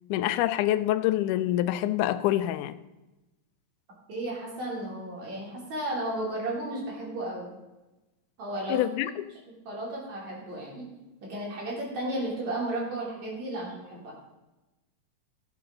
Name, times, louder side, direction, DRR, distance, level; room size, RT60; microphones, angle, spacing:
voice 1, 0.1-2.7 8.7-9.1, left 13 dB, 90° left, 2.1 m, -26 dB
voice 2, 4.1-7.5 8.4-8.8 9.7-10.9 11.3-14.1, right 1 dB, 65° right, 4.6 m, -33 dB
16.5 x 8.8 x 3.9 m
omnidirectional pair, 3.5 m